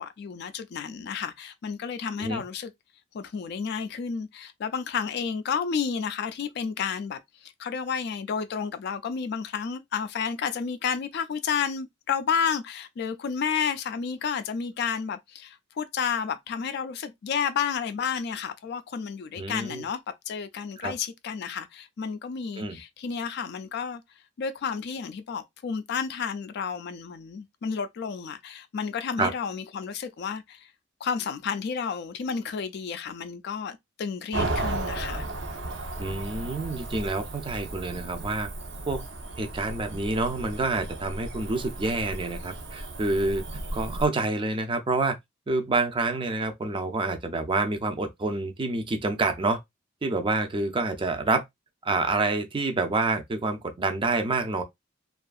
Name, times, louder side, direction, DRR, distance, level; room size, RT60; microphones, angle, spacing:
voice 1, 0.0-2.7 3.1-20.0 20.3-24.0 24.4-30.7 31.0-35.3, left 6 dB, 60° left, 0.3 m, -31 dB
voice 2, 19.4-19.8 20.8-20.9 22.6-22.8 29.2-29.3 36.0-38.5 38.9-39.1 39.4-43.4 43.7-45.2 45.5-49.6 50.0-51.4 51.8-54.6, right 3 dB, 25° right, 0.4 m, -27 dB
Cricket / Motor vehicle (road), 34.3-44.1, right 2 dB, 65° right, 0.6 m, -35 dB
2.6 x 2.4 x 2.3 m
head